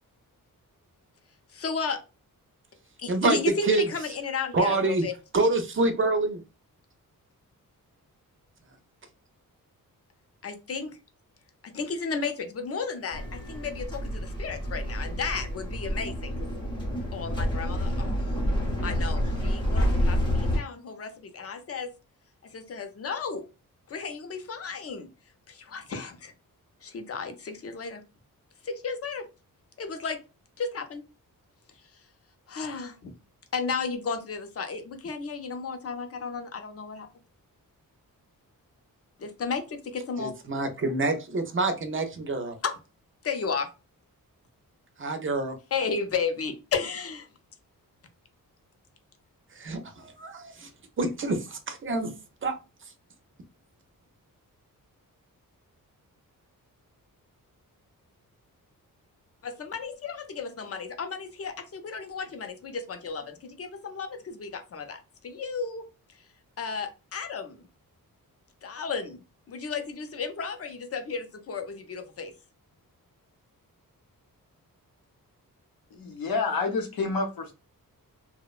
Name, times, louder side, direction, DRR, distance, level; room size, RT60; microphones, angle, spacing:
voice 1, 1.5-2.0 3.0-5.1 10.4-11.0 11.6-16.5 17.1-18.2 18.8-21.9 22.4-23.4 23.9-25.1 25.5-26.3 26.8-28.0 28.6-29.3 29.8-30.2 30.6-31.0 32.5-33.1 33.5-37.1 39.2-40.3 42.6-42.8 43.2-43.7 45.7-47.3 59.4-65.8 66.6-67.6 68.6-72.3, left 5 dB, 45° left, 7 dB, 0.5 m, -33 dB
voice 2, 3.1-3.9 4.5-5.1 5.3-6.4 40.2-42.6 45.0-45.6 49.5-50.7 51.0-52.1 52.4-52.6 52.8-52.9, right 3 dB, 35° right, 7 dB, 0.4 m, -27 dB
sound 1, 13.1-20.6, equal, 15° left, 0.7 m, -28 dB
voice 3, 75.9-77.5, left 4 dB, 85° left, 5 dB, 0.7 m, -28 dB
2.8 x 2.1 x 2.3 m, 0.30 s
wide cardioid pair, 150°, 35 cm